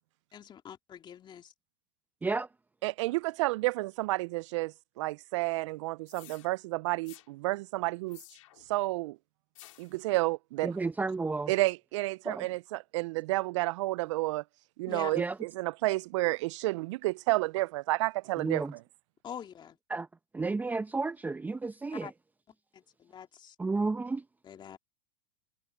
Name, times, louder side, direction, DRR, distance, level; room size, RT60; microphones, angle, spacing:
voice 1, 0.3-1.5 14.9-15.1 19.2-19.8 21.9-22.1 22.7-23.5 24.4-24.8, left 8 dB, 25° left, 2.7 m, -44 dB
voice 2, 2.8-8.2 8.7-9.2 9.8-10.7 11.5-14.4 14.8-18.6, right 20 dB, 65° right, 0.4 m, -31 dB
sound 1, 6.1-6.5 7.1-7.3 8.1-8.7 9.6-10.0, left 15 dB, 75° left, 4.5 m, -53 dB
voice 3, 10.6-11.5 12.2-12.5 15.1-15.4 18.4-18.7 19.9-20.1 20.3-22.1 23.6-24.2, right 3 dB, 10° right, 0.9 m, -32 dB
hypercardioid pair, 115°, 17 cm